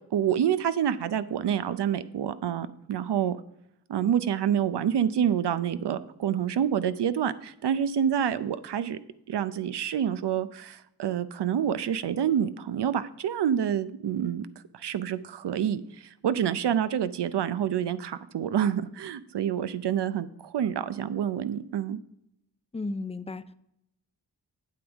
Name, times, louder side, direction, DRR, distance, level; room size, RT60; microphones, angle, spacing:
voice 1, 0.1-3.4 3.9-9.0 9.3-14.5 14.7-22.0, right 9 dB, 75° right, 14 dB, 0.6 m, -27 dB
voice 2, 22.7-23.5, left 3 dB, 15° left, 14 dB, 0.4 m, -34 dB
8.6 x 7.9 x 3.5 m, 0.80 s
wide cardioid pair, 85°, 41 cm